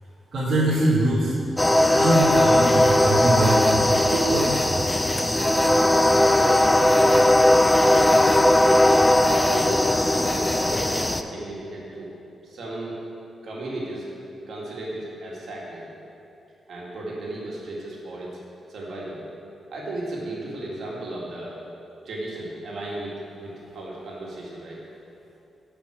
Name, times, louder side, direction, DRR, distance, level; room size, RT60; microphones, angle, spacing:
voice 1, 0.3-1.3 1.9-3.8 4.1-4.7, right 2 dB, 45° right, -8 dB, 1.5 m, -23 dB
sound 1, 1.6-11.2, left 1 dB, 10° left, 0.3 m, -18 dB
voice 2, 7.7-8.3 9.3-12.1 12.4-13.0 13.4-14.1 14.5-15.9 16.7-18.3 18.7-19.2 19.7-21.5 22.0-24.8, right 1 dB, 65° right, -5 dB, 2.1 m, -35 dB
9.7 x 5.2 x 6.1 m, 2.7 s
wide cardioid pair, 155°, 0 cm